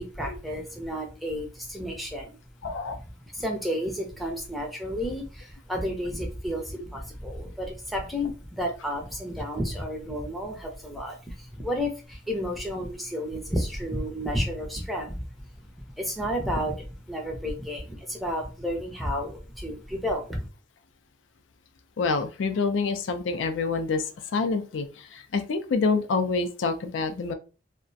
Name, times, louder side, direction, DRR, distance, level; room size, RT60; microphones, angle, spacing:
voice 1, 0.0-2.4 2.9-3.0 3.3-15.5 16.0-20.4, equal, ahead, 1 dB, 0.5 m, -31 dB
voice 2, 2.6-3.0 22.0-27.3, left 4 dB, 85° left, 8 dB, 0.4 m, -27 dB
2.3 x 2.1 x 2.5 m, 0.34 s
head